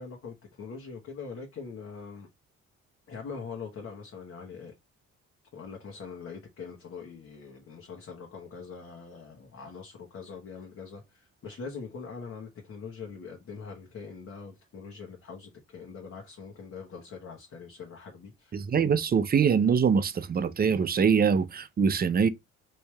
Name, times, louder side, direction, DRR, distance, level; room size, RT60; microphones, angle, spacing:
voice 1, 0.0-2.3 3.1-4.7 5.5-18.6, left 5 dB, 50° left, 1.2 m, -43 dB
voice 2, 18.5-22.3, right 6 dB, 30° right, 0.5 m, -24 dB
3.2 x 2.7 x 3.2 m
cardioid pair, 90°, 30 cm